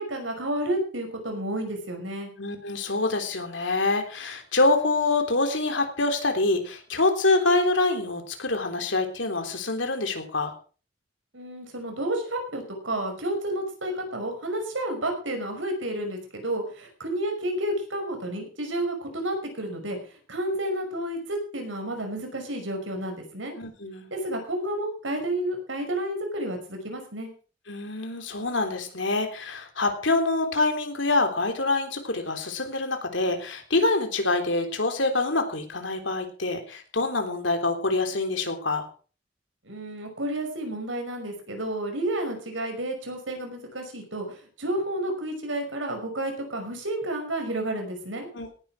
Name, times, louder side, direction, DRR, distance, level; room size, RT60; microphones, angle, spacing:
voice 1, 0.0-2.3 11.3-23.5 24.1-27.3 39.6-48.3, right 1 dB, 80° right, 4 dB, 5.7 m, -31 dB
voice 2, 2.4-10.5 23.6-24.1 27.7-38.8 48.3-48.5, left 2 dB, 70° left, 5 dB, 3.5 m, -25 dB
18.0 x 11.0 x 4.9 m, 0.38 s
head